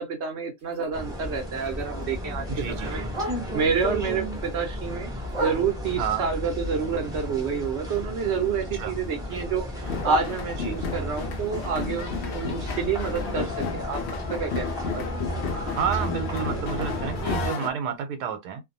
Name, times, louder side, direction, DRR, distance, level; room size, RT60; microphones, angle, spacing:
voice 1, 0.0-5.1 5.4-9.7 10.0-14.0 14.3-15.1, right 6 dB, 60° right, 0.7 m, -29 dB
Bark, 0.6-3.8 4.2-6.1 6.5-8.4 8.6-11.0 11.4-15.3 15.7-15.8 16.1-16.4 16.9-17.0 17.3-17.4 17.9-18.0, right 2 dB, 25° right, 0.9 m, -36 dB
sound 1, 0.9-17.5, equal, 5° right, 0.3 m, -34 dB
voice 2, 2.5-2.9 6.0-6.2 8.7-8.9 10.6-10.8 15.4-18.6, right 7 dB, 90° right, 1.2 m, -30 dB
sound 2, 9.8-17.7, left 5 dB, 85° left, 0.5 m, -33 dB
2.6 x 2.2 x 2.6 m
omnidirectional pair, 1.7 m